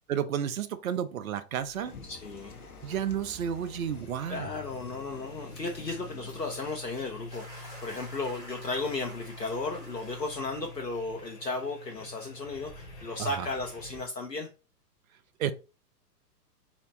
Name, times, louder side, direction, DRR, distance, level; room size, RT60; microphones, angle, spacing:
voice 1, 0.1-1.9 2.8-4.5 13.2-13.5 15.4-15.5, right 9 dB, 60° right, 0.6 m, -31 dB
sound 1, 1.6-14.0, left 2 dB, 10° left, 0.5 m, -47 dB
sound 2, 1.8-7.0, left 4 dB, 65° left, 1.1 m, -50 dB
voice 2, 2.0-2.6 4.3-14.5, left 3 dB, 85° left, 0.9 m, -35 dB
sound 3, 7.3-12.0, right 1 dB, 5° right, 1.4 m, -50 dB
4.1 x 4.0 x 3.0 m
figure-of-eight pair, 110°, 48 cm